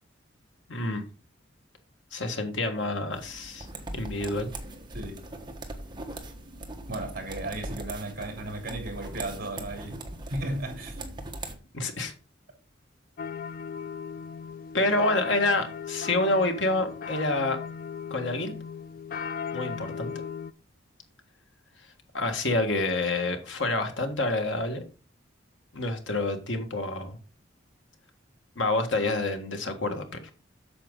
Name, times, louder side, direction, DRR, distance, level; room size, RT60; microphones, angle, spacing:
voice 1, 0.7-1.0 2.1-3.7 3.9-4.5 11.7-12.1 14.7-17.6 18.1-18.6 19.5-20.1 22.1-24.8 25.7-27.2 28.6-30.0, left 2 dB, 75° left, 1.6 m, -27 dB
sound 1, 3.1-11.6, right 2 dB, 25° right, 1.3 m, -40 dB
voice 2, 6.9-10.0 10.3-11.1, right 2 dB, 50° right, 3.3 m, -35 dB
sound 2, 13.2-20.5, left 6 dB, 45° left, 0.4 m, -37 dB
8.7 x 6.8 x 3.8 m
head